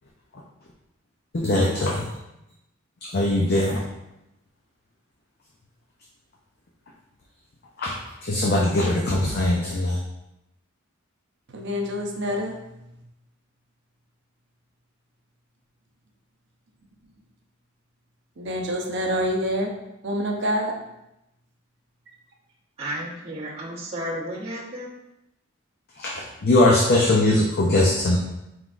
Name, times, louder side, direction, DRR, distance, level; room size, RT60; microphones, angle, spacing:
voice 1, 1.3-2.0 3.1-3.8 7.8-7.9 8.2-10.0 26.0-28.2, left 1 dB, 50° left, 0.6 m, -21 dB
voice 2, 11.5-12.9 18.4-19.7 20.0-20.7, equal, 60° right, 0.7 m, -27 dB
voice 3, 22.8-24.9, equal, 30° right, 1.2 m, -32 dB
4.6 x 3.8 x 2.5 m
head